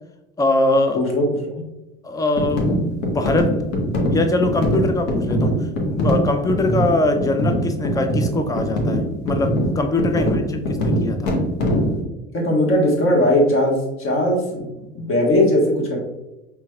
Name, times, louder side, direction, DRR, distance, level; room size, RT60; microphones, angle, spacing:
voice 1, 0.4-1.0 2.0-3.6 4.1-5.6 5.8-11.3, left 2 dB, 10° left, 6 dB, 0.4 m, -22 dB
sound 1, 2.4-12.0, equal, 55° left, 1.2 m, -22 dB
voice 2, 12.3-16.0, left 1 dB, 35° left, 0 dB, 1.4 m, -19 dB
5.7 x 3.4 x 2.3 m, 0.99 s
figure-of-eight pair, 70°, 38 cm